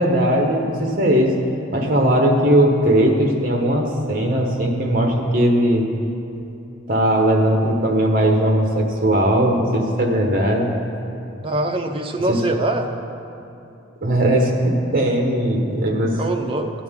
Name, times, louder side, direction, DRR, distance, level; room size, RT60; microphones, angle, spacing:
voice 1, 0.0-1.3 1.7-5.8 6.9-10.7 12.3-12.4 14.0-16.1, right 1 dB, 45° right, 1 dB, 1.2 m, -18 dB
voice 2, 11.4-12.9 16.2-16.7, right 2 dB, 25° right, 3 dB, 0.6 m, -23 dB
12.0 x 9.3 x 3.7 m, 2.8 s
head